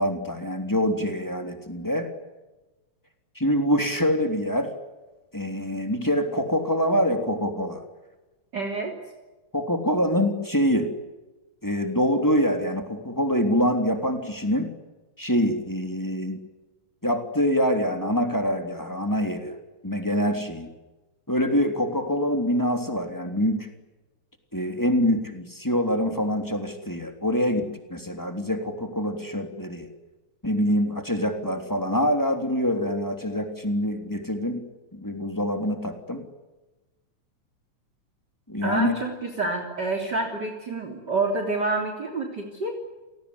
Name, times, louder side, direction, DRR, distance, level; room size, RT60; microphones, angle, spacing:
voice 1, 0.0-2.1 3.3-4.7 5.3-7.8 9.5-10.9 11.6-14.7 15.2-16.4 17.0-19.6 19.8-20.7 21.3-23.7 24.5-29.9 30.4-36.3 38.5-39.0, equal, 5° left, 5 dB, 3.0 m, -25 dB
voice 2, 8.5-8.9 38.6-42.7, right 3 dB, 35° right, 4 dB, 3.8 m, -28 dB
29.5 x 19.0 x 9.9 m, 1.1 s
omnidirectional pair, 3.3 m